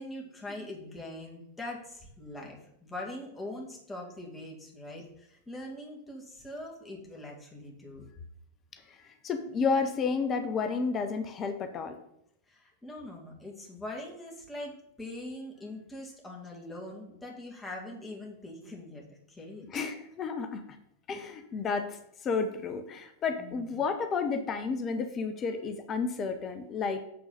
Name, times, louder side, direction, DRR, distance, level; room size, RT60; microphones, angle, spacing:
voice 1, 0.0-8.1 12.5-19.7 23.4-23.8, left 1 dB, 10° left, -2 dB, 2.2 m, -42 dB
voice 2, 9.2-12.0 19.7-20.6 21.1-22.0 22.2-27.0, left 5 dB, 30° left, 7 dB, 0.8 m, -31 dB
8.6 x 3.9 x 5.6 m, 0.75 s
figure-of-eight pair, 90°, 0 cm